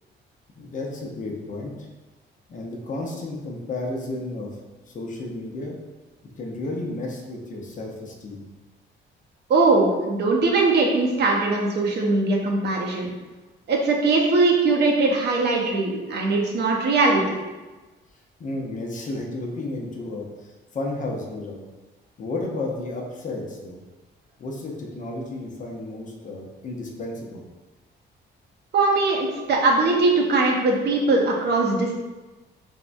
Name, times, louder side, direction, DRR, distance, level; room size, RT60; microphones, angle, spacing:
voice 1, 0.6-1.9 2.5-4.6 4.9-5.8 6.2-8.4 18.4-21.6 22.2-23.8 24.4-27.4, left 2 dB, 40° left, -1 dB, 0.6 m, -32 dB
voice 2, 9.5-13.1 13.7-17.4 28.7-31.9, right 3 dB, 55° right, 0 dB, 0.6 m, -21 dB
3.5 x 2.1 x 2.5 m, 1.2 s
cardioid pair, 90°, 20 cm